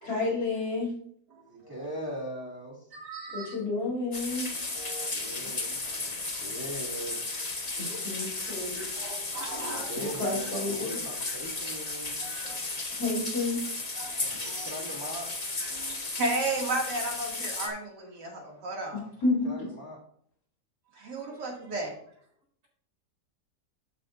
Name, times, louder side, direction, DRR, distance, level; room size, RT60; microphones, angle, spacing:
voice 1, 0.0-0.9 3.3-4.5 5.7-5.8 7.8-8.8 10.2-11.0 13.0-13.6 19.2-19.5, left 3 dB, 70° left, -7 dB, 3.9 m, -30 dB
voice 2, 1.5-2.7 5.1-7.4 9.6-12.2 14.6-15.3 19.4-20.0, equal, 10° right, -4 dB, 2.7 m, -40 dB
voice 3, 2.9-3.5 4.7-5.1 7.9-8.0 9.0-9.9 12.2-12.6 14.0-14.7 15.7-19.0 20.9-21.9, right 2 dB, 80° right, -1 dB, 3.0 m, -35 dB
sound 1, 4.1-17.7, left 3 dB, 25° left, 1.1 m, -35 dB
voice 4, 8.4-8.9 9.9-10.5 10.8-11.4 11.8-11.9 12.2-12.8 14.3-14.4 14.9-15.0 15.5-15.7, right 1 dB, 60° right, -4 dB, 4.7 m, -50 dB
13.0 x 6.5 x 2.6 m, 0.62 s
omnidirectional pair, 1.8 m